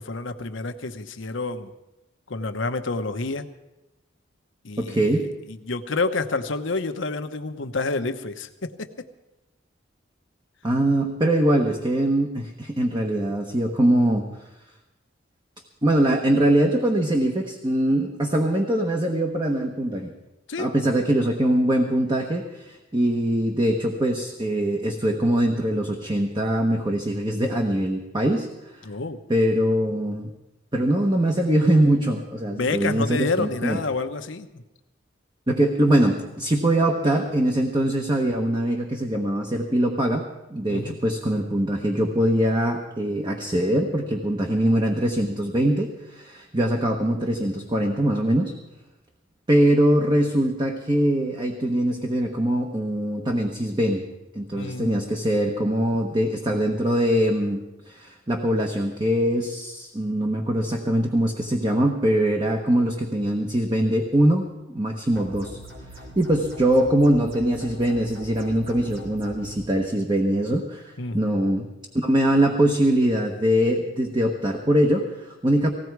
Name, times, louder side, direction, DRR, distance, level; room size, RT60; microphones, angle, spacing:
voice 1, 0.0-1.7 2.3-3.5 4.6-9.1 20.5-20.7 28.8-29.2 32.5-34.6 40.7-41.0 54.5-55.0 71.0-71.3, left 3 dB, 80° left, 8 dB, 1.0 m, -29 dB
voice 2, 4.8-5.3 10.6-14.2 15.8-20.1 20.6-28.5 28.8-28.9 29.3-30.3 30.7-33.8 35.5-48.5 49.5-54.1 54.3-65.6 66.2-71.7 71.9-75.7, right 1 dB, 25° right, 2 dB, 1.1 m, -22 dB
sound 1, 65.2-69.5, equal, 90° right, 3.6 m, -42 dB
18.5 x 16.5 x 4.7 m, 0.99 s
head